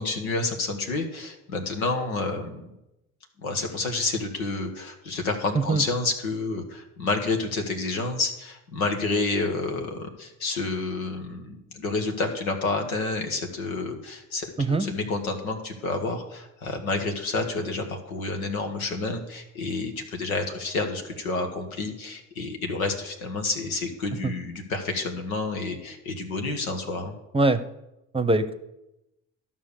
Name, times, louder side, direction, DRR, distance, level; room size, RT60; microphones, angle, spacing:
voice 1, 0.0-2.7 3.4-27.2, left 3 dB, 90° left, 4 dB, 1.3 m, -29 dB
voice 2, 14.6-14.9 24.2-24.3 27.3-27.6 28.1-28.5, right 2 dB, 15° right, 12 dB, 0.8 m, -22 dB
12.5 x 5.5 x 6.6 m, 0.92 s
hypercardioid pair, 50°, 41 cm